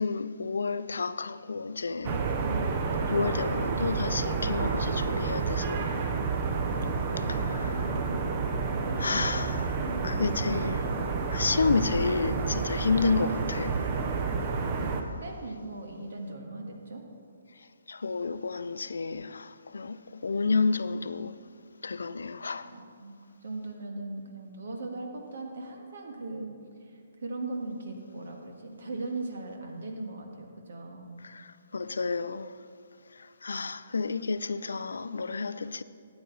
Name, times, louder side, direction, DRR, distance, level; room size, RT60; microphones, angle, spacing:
voice 1, 0.0-2.3 3.1-5.9 7.2-8.0 9.0-9.8 10.0-10.9 11.3-13.8 17.9-21.4 21.8-22.7 31.2-32.6 33.1-35.8, left 4 dB, 75° left, 0.4 m, -30 dB
sound 1, 2.0-15.0, right 4 dB, 35° right, 0.9 m, -29 dB
voice 2, 2.4-2.8 14.5-17.0 22.6-23.1 23.4-26.5 26.9-31.2, right 2 dB, 65° right, 1.8 m, -39 dB
13.0 x 8.9 x 4.1 m
figure-of-eight pair, 135°, 0 cm